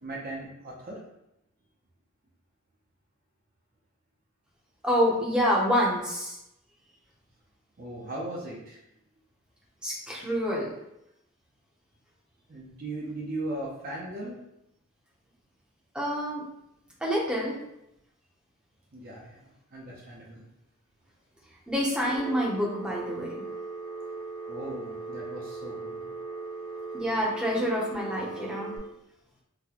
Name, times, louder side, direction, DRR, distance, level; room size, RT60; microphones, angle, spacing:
voice 1, 0.0-1.0 7.8-8.8 12.5-14.4 18.9-19.4 19.7-20.4 24.5-26.1 28.5-28.6, right 1 dB, 40° right, -4 dB, 0.6 m, -38 dB
voice 2, 4.8-6.4 9.8-10.7 15.9-16.4 17.0-17.5 21.7-23.3 26.9-28.7, equal, 5° right, -5 dB, 0.7 m, -27 dB
Telephone, 22.0-28.8, right 3 dB, 55° left, 0.9 m, -38 dB
4.0 x 2.1 x 2.8 m, 0.83 s
head